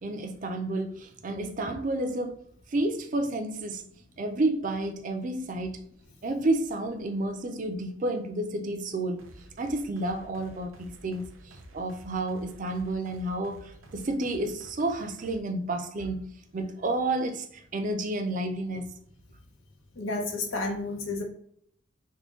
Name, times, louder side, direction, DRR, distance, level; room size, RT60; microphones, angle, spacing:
voice 1, 0.0-2.4 2.7-3.9 4.2-5.9 6.2-9.2 9.6-19.0, right 2 dB, 40° right, 0.4 m, -30 dB
sound 1, 9.2-15.4, right 1 dB, 85° right, 0.6 m, -51 dB
voice 2, 19.9-21.2, left 2 dB, 90° left, 0.9 m, -31 dB
3.6 x 2.2 x 3.6 m
head